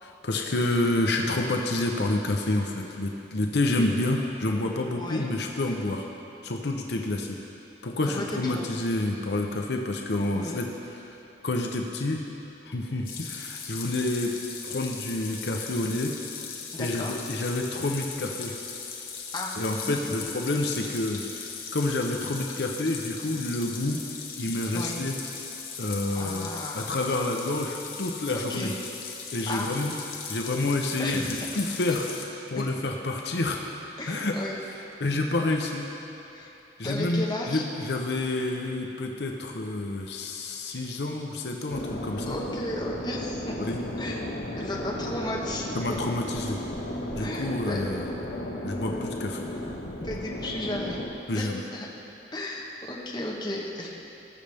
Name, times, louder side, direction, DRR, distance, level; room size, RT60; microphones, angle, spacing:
voice 1, 0.0-6.1 6.4-7.4 7.8-10.7 11.1-11.2 11.4-12.3 12.7-14.4 14.6-16.1 16.8-18.5 19.6-24.0 24.4-25.1 25.8-26.5 26.7-28.7 29.3-29.9 30.3-31.2 31.5-32.1 32.5-33.8 34.1-34.3 35.0-35.9 36.8-42.4 43.6-43.8 45.7-46.6 47.2-48.1 48.6-49.5 51.3-51.6, left 2 dB, 70° left, 2 dB, 0.8 m, -28 dB
voice 2, 8.0-8.7 10.3-10.6 16.7-17.1 19.3-20.0 24.7-25.0 26.1-26.9 28.3-28.7 29.5-29.7 31.0-31.4 34.0-34.6 36.3-36.5 36.8-37.6 42.3-43.4 44.0-44.3 44.6-46.0 47.2-47.8 50.0-51.0 51.3-51.9 52.3-53.9, left 1 dB, 25° left, -3 dB, 1.2 m, -34 dB
sound 1, 13.0-32.2, left 6 dB, 50° left, 1.2 m, -39 dB
sound 2, 41.7-51.1, equal, 90° left, 1.5 m, -34 dB
19.5 x 6.6 x 3.5 m, 2.9 s
head